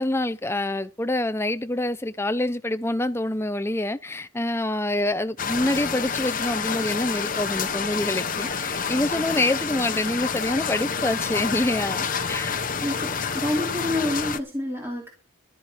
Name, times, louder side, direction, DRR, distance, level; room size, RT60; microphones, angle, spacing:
voice 1, 0.0-12.6, left 1 dB, 10° left, 0.6 m, -26 dB
sound 1, 5.4-14.4, left 6 dB, 40° left, 1.1 m, -28 dB
voice 2, 12.8-15.1, left 1 dB, 10° right, 2.7 m, -28 dB
13.5 x 12.5 x 4.4 m
head